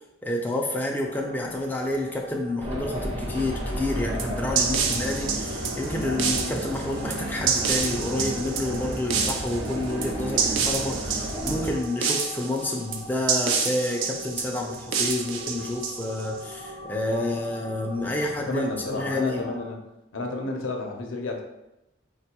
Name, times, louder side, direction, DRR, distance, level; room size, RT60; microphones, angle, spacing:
voice 1, 0.2-18.6 18.9-19.4, left 2 dB, 10° left, 0 dB, 0.3 m, -29 dB
sound 1, 1.0-19.7, equal, 70° right, 0.8 m, -43 dB
sound 2, 2.6-11.7, right 1 dB, 35° right, 0.6 m, -32 dB
sound 3, 4.2-16.4, right 6 dB, 90° right, 0.4 m, -28 dB
voice 2, 18.4-19.9 20.1-21.4, left 2 dB, 85° left, 2 dB, 0.5 m, -31 dB
4.3 x 2.2 x 2.8 m, 0.92 s
head